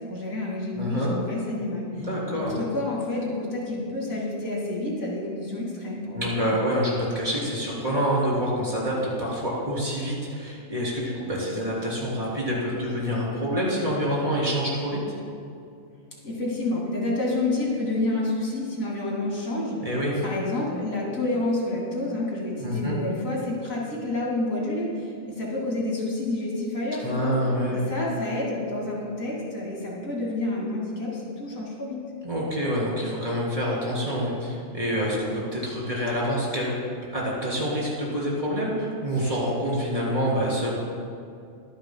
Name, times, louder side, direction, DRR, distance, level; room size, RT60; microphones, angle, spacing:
voice 1, 0.0-2.1 2.3-6.4 16.2-19.8 20.2-27.3 27.7-32.0, left 2 dB, 90° left, -3 dB, 2.9 m, -29 dB
voice 2, 0.8-1.1 2.0-2.6 6.2-15.0 19.8-20.2 22.6-23.0 27.0-27.9 32.2-36.7 37.1-40.8, equal, 25° right, -6 dB, 3.6 m, -27 dB
22.5 x 10.5 x 2.3 m, 2.4 s
omnidirectional pair, 1.4 m